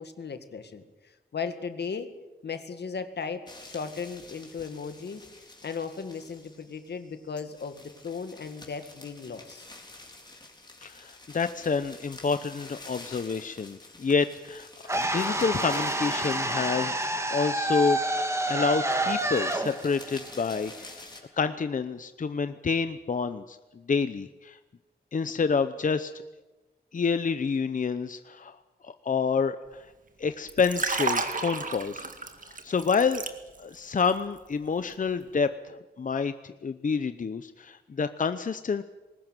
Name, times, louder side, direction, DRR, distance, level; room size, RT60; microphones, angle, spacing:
voice 1, 0.0-2.1 2.4-5.3 5.6-9.7, left 5 dB, 85° left, 9 dB, 2.0 m, -36 dB
sound 1, 3.5-21.2, left 2 dB, 25° left, 4.0 m, -49 dB
voice 2, 10.8-18.0 18.5-21.0 21.3-24.6 25.1-26.1 26.9-28.6 28.8-29.9 30.2-32.1 32.4-33.2 33.6-38.8, left 5 dB, 50° left, 11 dB, 0.8 m, -28 dB
sound 2, 14.9-21.0, right 1 dB, 15° right, 2.2 m, -28 dB
Liquid, 30.5-33.8 34.1-34.4, right 4 dB, 50° right, 2.0 m, -32 dB
21.0 x 19.0 x 9.1 m, 1.1 s
wide cardioid pair, 115°, 17 cm